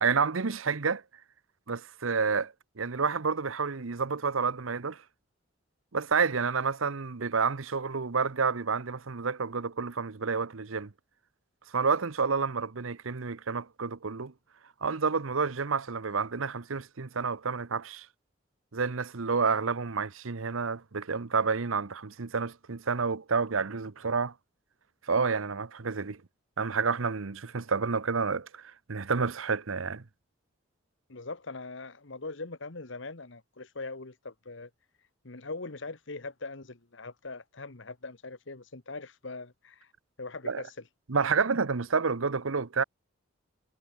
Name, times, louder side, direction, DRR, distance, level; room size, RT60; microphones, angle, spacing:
voice 1, 0.0-1.0 1.7-5.0 5.9-10.9 11.7-14.3 14.8-18.1 18.7-24.3 25.0-26.2 26.6-30.0 40.4-40.6 41.1-42.8, right 5 dB, 85° right, 0.9 m, -29 dB
voice 2, 31.1-34.7 35.2-39.9 40.2-40.7, left 3 dB, 65° left, 1.4 m, -41 dB
head